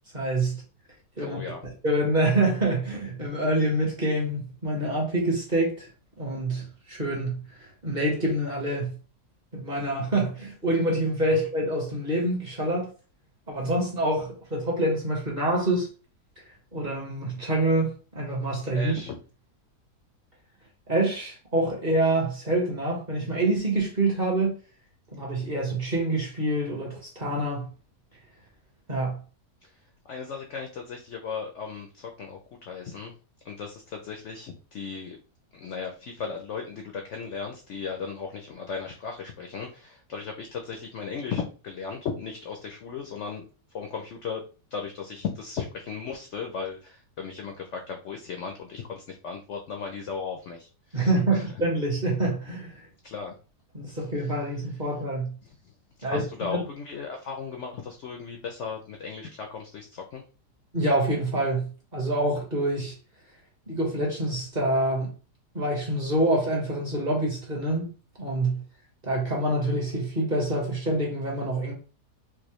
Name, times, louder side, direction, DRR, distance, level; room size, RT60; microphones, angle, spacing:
voice 1, 0.1-0.6 1.2-1.4 1.8-5.9 6.2-7.4 7.8-8.9 9.5-12.9 13.5-15.9 16.7-18.9 20.9-24.5 25.1-27.7 28.9-29.2 50.9-52.7 53.7-55.3 56.0-56.6 60.7-62.9 63.7-65.1 65.5-67.9 68.2-68.6 69.0-71.7, right 1 dB, 30° right, 1.0 m, -26 dB
voice 2, 1.2-1.6 11.3-11.4 18.7-19.2 29.6-29.7 30.0-33.1 33.4-35.2 35.5-43.4 43.7-44.4 44.7-51.5 53.0-53.3 54.2-54.4 55.4-55.7 56.0-60.2, left 5 dB, 70° left, 0.7 m, -36 dB
4.7 x 2.1 x 3.0 m
omnidirectional pair, 1.8 m